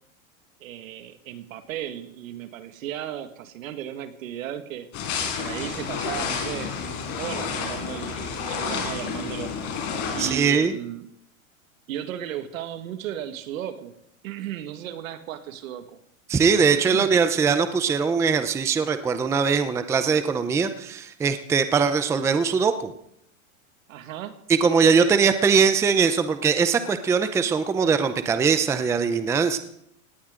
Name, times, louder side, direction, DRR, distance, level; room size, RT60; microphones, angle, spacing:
voice 1, 0.6-4.9 5.4-6.8 7.2-9.5 10.1-11.1 11.9-13.9 14.2-16.0 16.5-17.2 23.9-24.4, right 10 dB, 70° right, 10 dB, 1.9 m, -35 dB
sound 1, 4.9-10.3, left 6 dB, 35° left, 5.1 m, -30 dB
voice 2, 10.2-10.7 16.3-22.9 24.5-29.6, right 5 dB, 5° right, 10 dB, 0.5 m, -21 dB
18.5 x 17.5 x 3.8 m, 0.75 s
supercardioid pair, 145°, 41 cm